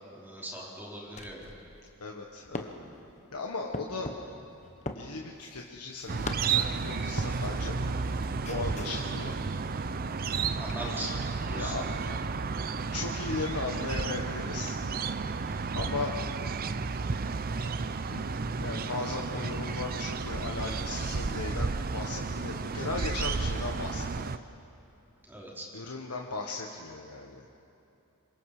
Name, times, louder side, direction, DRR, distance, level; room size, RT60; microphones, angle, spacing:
voice 1, 0.1-1.6 10.6-11.7 25.2-25.7, equal, 10° right, -4 dB, 4.1 m, -40 dB
sound 1, 1.1-7.7 8.0-11.3, left 2 dB, 30° left, 1.2 m, -44 dB
voice 2, 2.0-2.9 3.3-4.1 4.9-7.8 8.5-9.4 10.9-11.0 11.5-12.2 12.9-14.8 15.7-16.1 18.1-24.3 25.7-27.4, left 3 dB, 85° left, 0 dB, 1.4 m, -37 dB
sound 2, 6.1-24.4, right 4 dB, 40° right, 0.6 m, -32 dB
27.0 x 24.0 x 5.0 m, 2.8 s
head